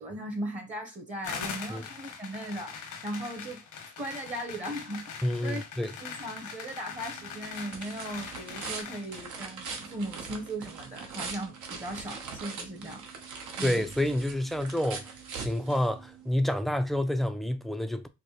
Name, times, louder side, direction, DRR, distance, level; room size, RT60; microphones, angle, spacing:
voice 1, 0.0-3.6 4.0-5.0 5.4-5.6 6.0-13.0 13.6-13.9, right 1 dB, 25° right, 0.8 m, -38 dB
sound 1, 1.2-9.2, left 6 dB, 85° left, 1.2 m, -42 dB
voice 2, 5.2-5.9 13.6-15.0 15.4-18.1, left 1 dB, ahead, 0.4 m, -28 dB
sound 2, 6.9-16.3, right 5 dB, 80° right, 1.0 m, -42 dB
4.6 x 2.1 x 2.9 m
cardioid pair, 90°, 30 cm